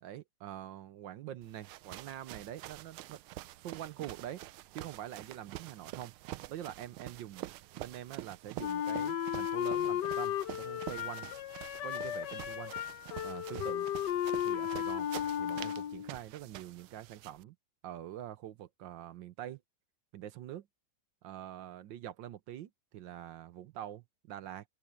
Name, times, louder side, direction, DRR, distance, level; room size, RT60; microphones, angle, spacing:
voice 1, 0.0-4.4 4.7-6.1 6.5-7.5 7.8-11.3 11.8-12.7 13.2-13.9 14.4-15.1 15.4-17.6 17.8-19.6 20.1-20.7 21.2-24.6, right 11 dB, 70° right, 1.3 m, -45 dB
sound 1, 1.4-17.4, right 16 dB, 85° right, 1.5 m, -47 dB
Wind instrument woodwind instrument, 8.6-16.1, left 10 dB, 65° left, 1.3 m, -35 dB
open air
omnidirectional pair, 2.3 m